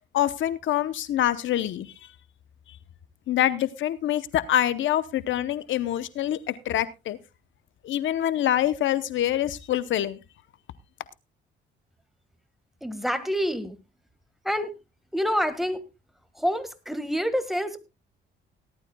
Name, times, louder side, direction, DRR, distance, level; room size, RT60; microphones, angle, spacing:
voice 1, 0.1-1.9 3.3-7.2 7.8-10.2, left 12 dB, 75° left, 15 dB, 0.8 m, -25 dB
voice 2, 12.8-13.8 14.4-14.7 15.1-15.8 16.4-17.8, equal, ahead, 11 dB, 1.6 m, -27 dB
18.5 x 12.0 x 2.2 m, 0.25 s
cardioid pair, 90°, 20 cm